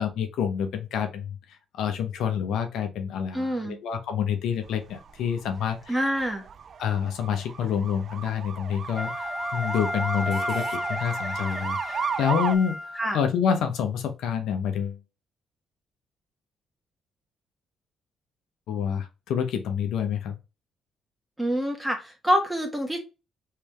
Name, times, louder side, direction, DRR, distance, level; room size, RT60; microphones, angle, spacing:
voice 1, 0.0-6.1 6.8-15.0 18.7-20.4, left 8 dB, 80° left, 0.8 m, -28 dB
voice 2, 3.3-3.8 5.9-6.5 13.0-13.2 21.4-23.0, equal, 5° right, 1.5 m, -26 dB
sound 1, 4.7-12.6, right 7 dB, 55° right, 0.3 m, -35 dB
Wind instrument woodwind instrument, 8.9-13.2, left 1 dB, 10° left, 0.6 m, -32 dB
3.3 x 3.3 x 3.2 m
cardioid pair, 90°, 0 cm